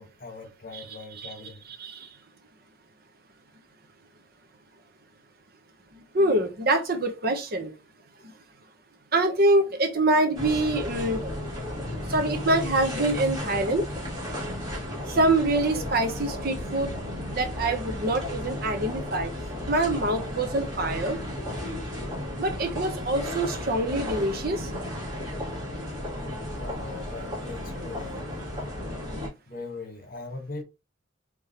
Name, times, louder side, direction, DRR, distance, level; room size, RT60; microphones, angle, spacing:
voice 1, 0.0-1.7 26.6-28.3 29.5-30.6, left 3 dB, 45° left, 1.4 m, -40 dB
voice 2, 1.8-2.1 6.1-7.7 9.1-11.2 12.1-13.9 15.1-16.9 17.3-19.3 19.7-21.2 22.4-24.7, right 2 dB, 50° right, 0.9 m, -25 dB
sound 1, 10.3-29.3, left 1 dB, 20° right, 2.8 m, -34 dB
4.9 x 3.5 x 2.9 m
head